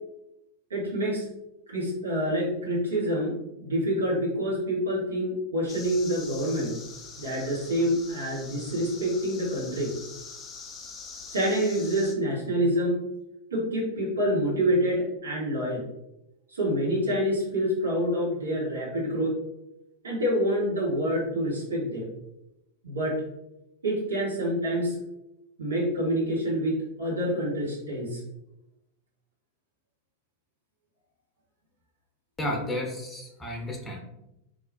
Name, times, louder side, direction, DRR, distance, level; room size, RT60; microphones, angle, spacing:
voice 1, 0.7-1.3 1.7-6.7 7.2-9.9 11.3-13.0 13.5-15.9 16.5-19.3 20.0-22.1 22.8-23.2 23.8-25.0 25.6-28.2, equal, 70° right, -4 dB, 1.5 m, -27 dB
sound 1, 5.7-12.2, left 4 dB, 25° left, 0.5 m, -44 dB
voice 2, 32.4-34.0, left 1 dB, 5° left, 0 dB, 0.9 m, -32 dB
4.0 x 2.8 x 2.7 m, 0.89 s
figure-of-eight pair, 90°, 0 cm